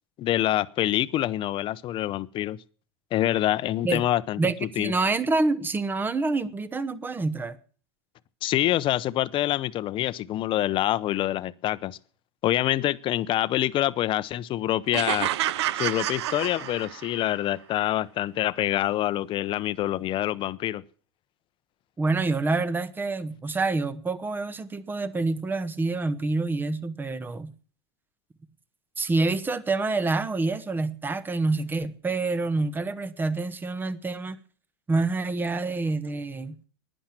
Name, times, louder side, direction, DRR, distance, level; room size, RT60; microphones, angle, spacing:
voice 1, 0.2-2.6 3.1-4.9 8.4-12.0 12.4-15.3 15.8-20.8, left 13 dB, 40° left, 0.7 m, -26 dB
voice 2, 4.4-7.6 22.0-27.5 29.0-34.4 34.9-36.5, right 3 dB, 15° right, 0.9 m, -27 dB
sound 1, 14.9-17.2, right 13 dB, 80° right, 0.6 m, -29 dB
11.5 x 10.5 x 7.4 m
supercardioid pair, 120°, 14 cm